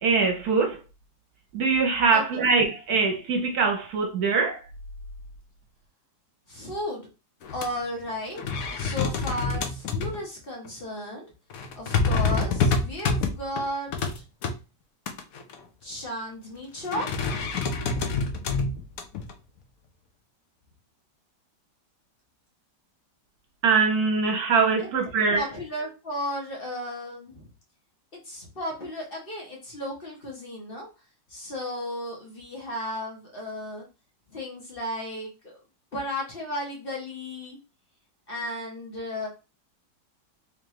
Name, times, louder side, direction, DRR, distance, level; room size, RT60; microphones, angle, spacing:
voice 1, 0.0-0.8 1.5-4.6 23.6-25.4, right 4 dB, 65° right, 1.1 m, -23 dB
voice 2, 2.1-2.4 6.5-7.1 7.5-8.4 8.8-11.3 11.8-14.2 15.8-17.6 24.8-24.9 25.3-27.5 28.2-30.9 31.3-33.9 34.3-35.5 35.9-37.6 38.3-39.3, left 1 dB, 35° left, 1.3 m, -34 dB
sound 1, 7.4-7.7 8.0-8.1 8.4-10.2 10.7-10.8 11.5-14.5 15.1-15.6 16.9-19.3, left 4 dB, 65° left, 0.9 m, -27 dB
3.6 x 3.3 x 3.1 m
omnidirectional pair, 2.0 m